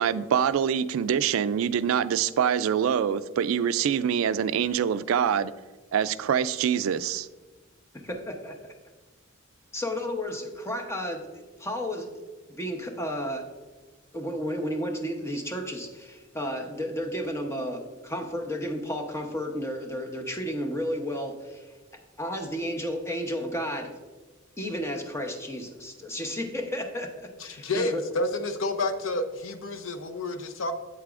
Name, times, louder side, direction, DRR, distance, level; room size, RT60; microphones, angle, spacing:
voice 1, 0.0-5.5 5.9-7.3, right 8 dB, 75° right, 0.3 m, -25 dB
voice 2, 7.9-8.6 9.7-12.1 12.5-13.5 14.1-21.7 22.2-23.9 24.6-28.0, equal, 15° left, 0.8 m, -32 dB
voice 3, 27.4-30.7, left 2 dB, 65° left, 0.6 m, -30 dB
8.2 x 8.1 x 2.5 m
head